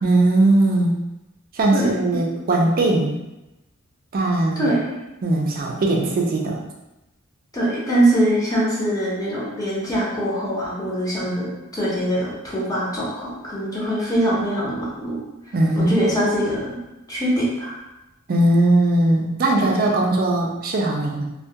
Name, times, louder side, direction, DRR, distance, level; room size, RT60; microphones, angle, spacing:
voice 1, 0.0-1.0 1.5-3.2 4.1-4.7 5.2-6.6 15.5-15.9 18.3-21.3, right 2 dB, 45° right, 0 dB, 0.4 m, -19 dB
voice 2, 1.7-2.2 4.6-4.8 7.5-15.1 15.7-16.8 17.1-17.7 19.6-19.7, right 1 dB, 15° left, -7 dB, 0.7 m, -23 dB
2.2 x 2.2 x 2.7 m, 0.97 s
head